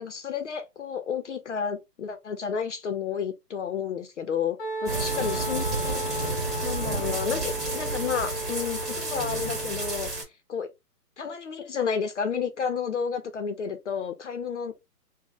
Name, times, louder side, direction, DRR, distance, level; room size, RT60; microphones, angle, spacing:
voice 1, 0.0-6.1 6.6-10.1 10.5-10.7 11.2-14.7, left 7 dB, 50° left, 0.6 m, -31 dB
Wind instrument woodwind instrument, 4.6-10.2, right 1 dB, 15° left, 1.0 m, -35 dB
sound 1, 4.9-10.2, right 2 dB, 15° right, 1.6 m, -31 dB
2.9 x 2.1 x 4.0 m
hypercardioid pair, 155°, 47 cm